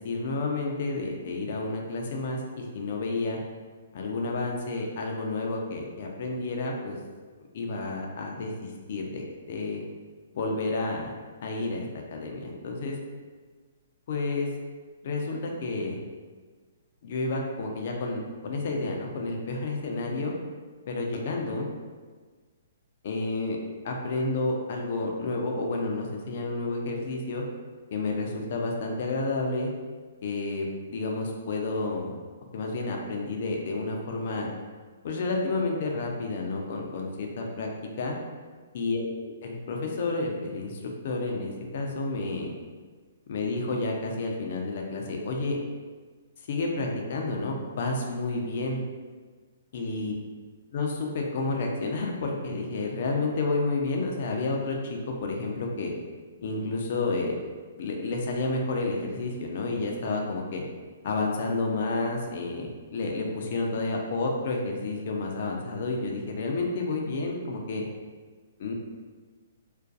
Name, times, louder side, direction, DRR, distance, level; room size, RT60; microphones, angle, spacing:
voice 1, 0.0-3.4 3.9-7.0 7.5-9.8 10.3-11.1 11.4-11.8 12.1-13.0 14.1-14.5 15.0-16.0 17.0-20.3 20.9-21.7 23.0-23.6 23.8-27.4 27.9-29.7 30.2-32.1 32.5-34.5 35.0-37.7 38.0-38.1 38.7-39.1 39.4-42.5 43.3-45.6 46.5-48.8 49.7-50.1 50.7-55.9 56.4-57.3 57.8-60.6 61.0-67.8 68.6-68.7, left 3 dB, 55° left, 0 dB, 0.4 m, -30 dB
2.4 x 2.2 x 2.5 m, 1.5 s
figure-of-eight pair, 125°, 0 cm